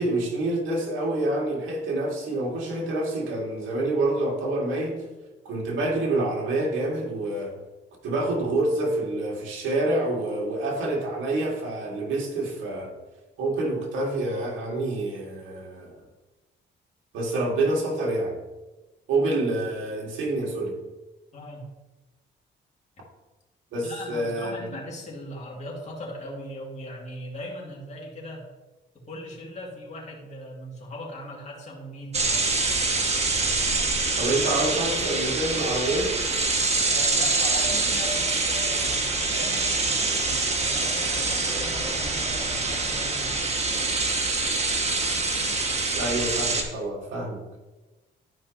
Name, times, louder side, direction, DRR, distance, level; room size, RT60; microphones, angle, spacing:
voice 1, 0.0-5.1 5.5-7.6 8.0-12.9 13.4-16.0 17.1-18.4 19.1-20.8 23.7-24.8 34.2-36.2 45.9-47.4, right 2 dB, 80° right, -1 dB, 1.9 m, -27 dB
voice 2, 21.3-21.7 23.8-28.4 28.9-32.4 36.8-43.6, left 1 dB, 35° left, -3 dB, 2.4 m, -39 dB
sound 1, 32.1-46.6, right 3 dB, 35° right, 1.3 m, -25 dB
12.0 x 5.2 x 2.9 m, 1.1 s
cardioid pair, 90°, 20 cm